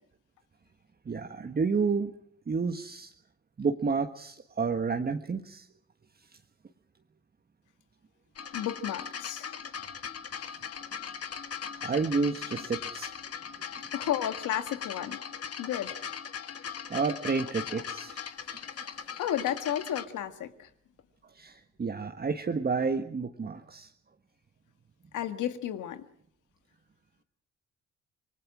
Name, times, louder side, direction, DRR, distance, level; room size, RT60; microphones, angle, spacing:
voice 1, 1.0-2.1 2.5-3.1 3.6-5.7 11.8-13.1 16.9-19.2 21.3-23.9, right 4 dB, 30° right, 4 dB, 1.5 m, -30 dB
sound 1, 8.4-20.0 21.0-21.1, left 7 dB, 50° left, 1.8 m, -39 dB
voice 2, 8.5-9.5 13.9-15.2 15.6-16.0 19.2-20.7 25.1-26.0, left 11 dB, 80° left, 9 dB, 1.8 m, -32 dB
27.0 x 20.0 x 6.2 m, 0.64 s
cardioid pair, 90°, 30 cm